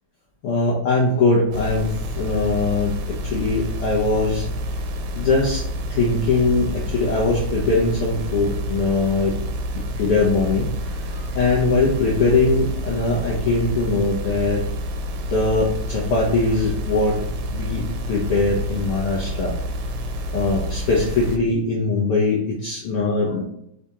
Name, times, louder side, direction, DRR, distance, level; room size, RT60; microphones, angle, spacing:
voice 1, 0.4-4.5 5.1-9.3 9.8-14.6 15.3-17.2 17.5-19.5 20.3-23.4, left 3 dB, 75° left, -5 dB, 1.3 m, -21 dB
sound 1, 1.5-21.4, equal, 80° right, 2.0 m, -28 dB
4.9 x 3.4 x 2.8 m, 0.76 s
omnidirectional pair, 3.6 m